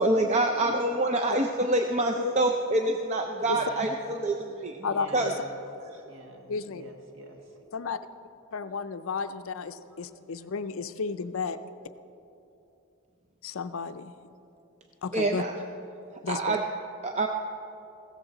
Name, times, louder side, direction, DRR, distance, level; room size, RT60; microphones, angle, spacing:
voice 1, 0.0-4.8 5.1-5.3 15.1-15.5 16.3-16.6 17.0-17.3, right 2 dB, 30° right, 3 dB, 0.5 m, -26 dB
voice 2, 3.4-4.0 4.3-7.7 9.3-9.4 9.7-10.1, right 1 dB, 55° right, 2 dB, 1.5 m, -48 dB
voice 3, 4.8-5.3 6.5-6.8 7.7-8.0 8.5-11.6 13.4-14.1 15.0-15.4 16.2-16.6, left 5 dB, 65° left, 11 dB, 0.5 m, -33 dB
16.0 x 13.5 x 3.9 m, 2.8 s
head